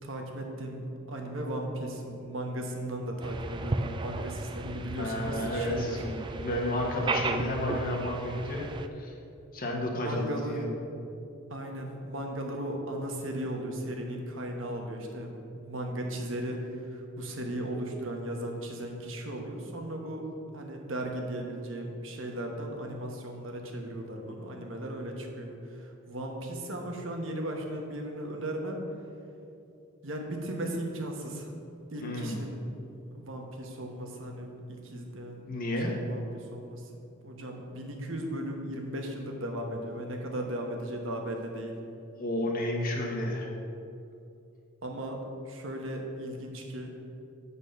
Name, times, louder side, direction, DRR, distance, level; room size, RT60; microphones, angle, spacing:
voice 1, 0.0-6.3 9.9-10.6 11.5-20.2 20.5-28.8 30.0-31.5 31.9-32.6 33.1-35.4 35.8-36.8 37.2-41.7 44.8-45.2 45.5-46.9, right 1 dB, 70° right, 2 dB, 1.2 m, -36 dB
sound 1, 3.2-8.9, right 3 dB, 25° right, 0.3 m, -35 dB
voice 2, 5.0-8.6 8.9-9.1 9.5-10.7 32.0-32.5 35.5-35.9 42.2-43.5, left 1 dB, 45° left, -1 dB, 1.4 m, -31 dB
8.4 x 4.1 x 6.6 m, 2.6 s
head